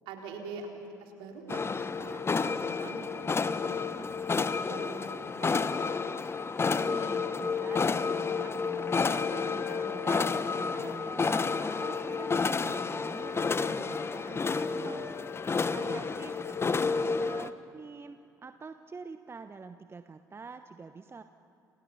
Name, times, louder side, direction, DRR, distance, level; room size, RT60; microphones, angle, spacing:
voice 1, 0.1-0.7 1.0-1.6 2.0-3.8 4.1-5.7, right 5 dB, 65° right, 1 dB, 4.0 m, -45 dB
sound 1, 1.5-17.5, left 4 dB, 25° left, 1.1 m, -30 dB
voice 2, 6.6-10.3 10.6-15.1 15.7-21.2, right 4 dB, 25° right, 9 dB, 1.0 m, -46 dB
Wind instrument woodwind instrument, 8.2-16.7, left 5 dB, 70° left, 3.5 m, -47 dB
29.0 x 29.0 x 5.7 m, 2.6 s
figure-of-eight pair, 55°, 9 cm